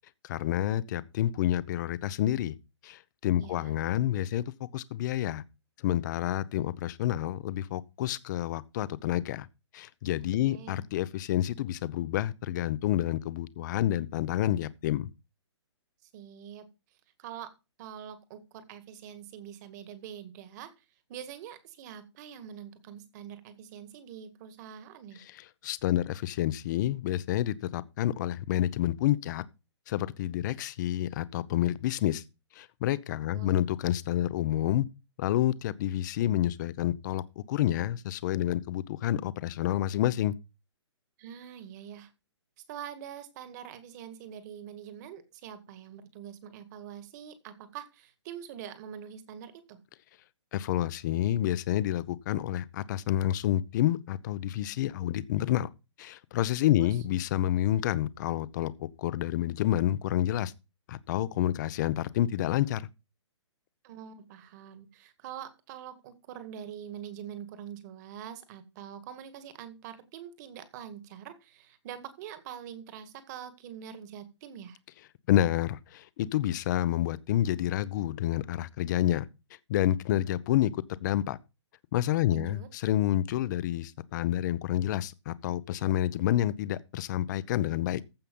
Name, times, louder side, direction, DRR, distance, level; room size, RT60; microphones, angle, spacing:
voice 1, 0.2-2.6 2.8-4.4 4.7-5.4 5.8-9.5 9.7-15.1 25.6-29.4 29.9-32.2 32.6-34.9 35.2-37.2 37.5-40.3 50.5-55.7 56.0-60.5 60.9-62.9 75.3-79.3 79.7-80.7 81.0-81.4 81.9-88.0, left 12 dB, 40° left, 0.8 m, -29 dB
voice 2, 3.3-3.7 10.4-10.9 16.1-16.7 17.2-17.5 17.8-20.7 21.1-25.2 33.3-33.6 41.2-42.1 42.7-49.8 56.8-56.9 63.8-74.8 82.3-82.7, right 9 dB, 40° right, 2.0 m, -44 dB
14.5 x 5.7 x 5.4 m
hypercardioid pair, 140°, 15 cm